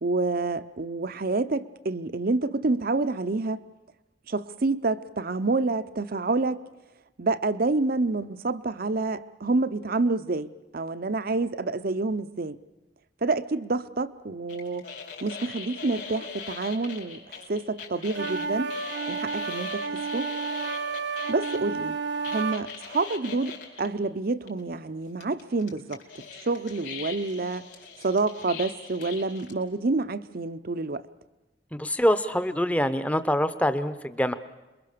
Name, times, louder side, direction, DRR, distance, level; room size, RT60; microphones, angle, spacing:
voice 1, 0.0-3.6 4.3-6.6 7.2-12.6 13.2-14.8 15.2-18.7 19.1-20.3 21.3-22.0 22.3-26.0 26.4-27.7 28.0-31.0, right 3 dB, 55° right, 0.7 m, -28 dB
sound 1, 14.5-21.6 22.2-23.9 24.5-24.6 25.2-29.5, left 6 dB, 65° left, 4.6 m, -41 dB
sound 2, 18.1-22.6, right 5 dB, 70° right, 1.0 m, -31 dB
voice 2, 31.7-34.3, equal, 10° left, 0.8 m, -25 dB
27.0 x 22.5 x 6.8 m
head